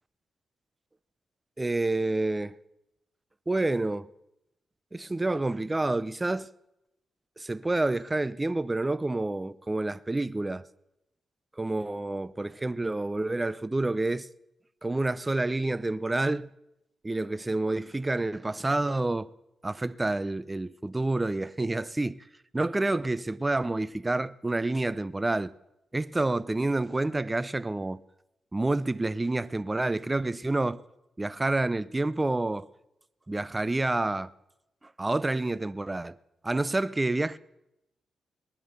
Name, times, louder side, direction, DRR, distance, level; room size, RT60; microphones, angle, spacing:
voice 1, 1.6-2.6 3.5-4.1 4.9-6.5 7.4-10.6 11.6-14.3 14.8-16.5 17.0-19.3 19.6-22.2 22.5-25.5 25.9-28.0 28.5-30.8 31.2-32.7 33.3-34.3 35.0-36.2 36.4-37.4, right 2 dB, 20° right, 0.6 m, -28 dB
19.0 x 11.0 x 6.8 m
cardioid pair, 65°, 0 cm